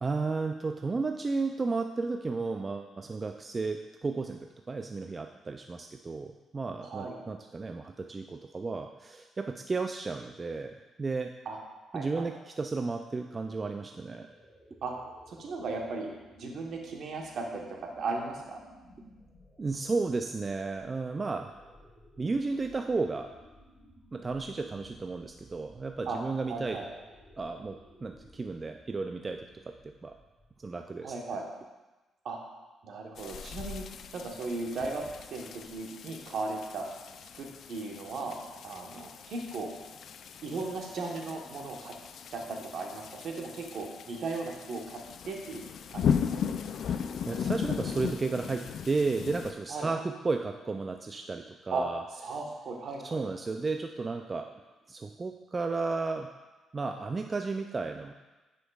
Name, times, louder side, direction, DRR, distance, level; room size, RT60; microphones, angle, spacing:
voice 1, 0.0-11.3 11.9-14.3 19.6-21.6 22.2-23.3 24.1-26.8 27.4-29.7 30.0-30.1 30.6-31.1 46.8-52.0 53.0-54.5 54.9-56.3 56.7-58.1, right 3 dB, 30° right, 5 dB, 0.3 m, -33 dB
voice 2, 6.8-7.2 11.4-11.6 11.9-12.3 14.8-14.9 15.3-16.1 16.4-18.6 26.1-26.2 26.5-26.9 31.0-31.4 32.2-32.4 32.8-33.9 34.1-35.0 35.3-36.9 37.4-38.4 38.6-39.7 40.4-41.9 42.3-46.2 49.7-49.9 51.7-51.8 52.2-53.2, right 3 dB, 65° right, 0 dB, 1.1 m, -36 dB
sound 1, 13.4-30.8, equal, 5° right, 2.0 m, -58 dB
sound 2, 33.2-49.5, left 7 dB, 65° left, 0.3 m, -37 dB
9.7 x 5.2 x 2.4 m, 1.1 s
cardioid pair, 90°, 0 cm